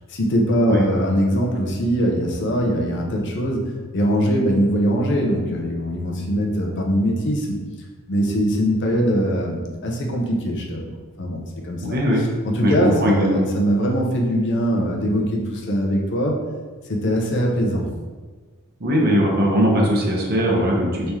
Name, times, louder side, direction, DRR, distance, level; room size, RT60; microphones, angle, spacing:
voice 1, 0.1-7.6 8.1-12.0 12.4-16.4 16.9-17.9, equal, 55° left, 0 dB, 0.6 m, -22 dB
voice 2, 11.8-12.2 12.6-13.4 18.8-21.1, equal, 45° right, -2 dB, 0.7 m, -19 dB
3.1 x 2.8 x 3.5 m, 1.4 s
head